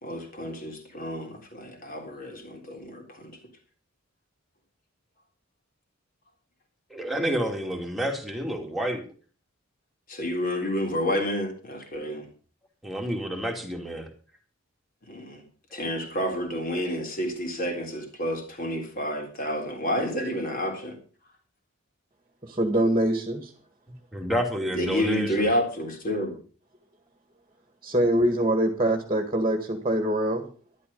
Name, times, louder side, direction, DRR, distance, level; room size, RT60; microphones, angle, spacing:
voice 1, 0.0-3.4 10.1-12.3 15.1-15.4 15.7-21.0 24.8-26.4, equal, 40° left, 3 dB, 3.7 m, -29 dB
voice 2, 6.9-9.0 12.8-14.1 15.7-15.8 24.1-25.5, equal, ahead, 1 dB, 2.5 m, -29 dB
voice 3, 22.4-23.5 27.8-30.4, right 1 dB, 25° right, 6 dB, 1.7 m, -24 dB
12.5 x 11.5 x 5.5 m, 0.39 s
head